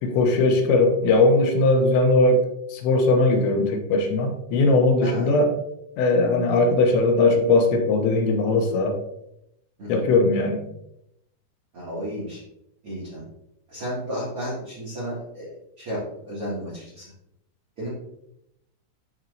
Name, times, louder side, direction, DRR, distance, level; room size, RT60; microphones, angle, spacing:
voice 1, 0.0-2.4 2.7-5.5 6.0-9.0 9.9-10.6, left 2 dB, 80° left, 3 dB, 3.3 m, -19 dB
voice 2, 5.0-5.3 9.8-10.0 11.7-12.4 12.8-13.2 13.7-16.0 16.3-17.0 17.8-17.9, equal, 40° right, -9 dB, 2.3 m, -33 dB
13.0 x 4.5 x 2.6 m, 0.81 s
omnidirectional pair, 5.1 m